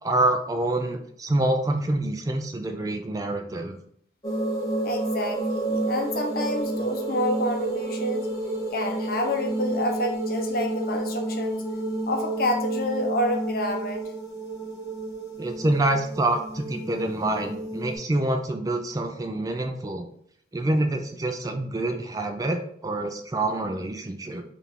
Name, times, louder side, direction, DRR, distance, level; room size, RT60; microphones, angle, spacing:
voice 1, 0.0-3.8 15.4-20.1 20.5-24.4, right 2 dB, 20° right, 5 dB, 0.3 m, -26 dB
sound 1, 4.2-18.0, right 2 dB, 20° left, 0.7 m, -30 dB
voice 2, 4.8-8.3 8.7-11.6 12.1-14.0, left 1 dB, 55° left, 4 dB, 0.7 m, -28 dB
3.5 x 2.5 x 4.4 m, 0.66 s
head